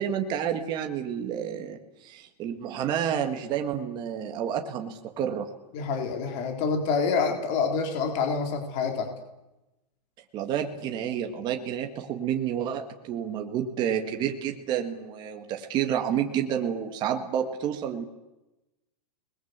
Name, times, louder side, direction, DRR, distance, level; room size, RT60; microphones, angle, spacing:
voice 1, 0.0-5.5 10.3-18.0, right 9 dB, 20° right, 4 dB, 1.8 m, -30 dB
voice 2, 5.7-9.1, left 5 dB, 30° left, 4 dB, 4.1 m, -27 dB
29.5 x 21.5 x 8.2 m, 0.99 s
hypercardioid pair, 165°, 21 cm